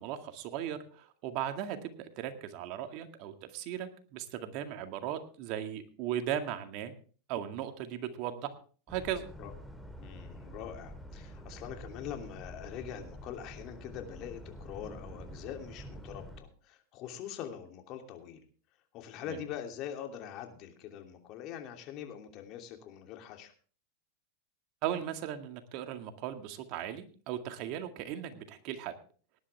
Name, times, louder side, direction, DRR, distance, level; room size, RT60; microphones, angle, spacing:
voice 1, 0.0-6.9 7.3-8.5 8.9-9.3 19.2-19.4 24.8-28.9, right 10 dB, 55° right, 7 dB, 2.0 m, -37 dB
Boat Water vehicle, 8.9-16.4, equal, ahead, 2.0 m, -47 dB
voice 2, 10.0-18.4 18.9-23.5, left 9 dB, 50° left, 4 dB, 2.9 m, -43 dB
18.5 x 11.0 x 3.5 m, 0.40 s
hypercardioid pair, 110°, 0 cm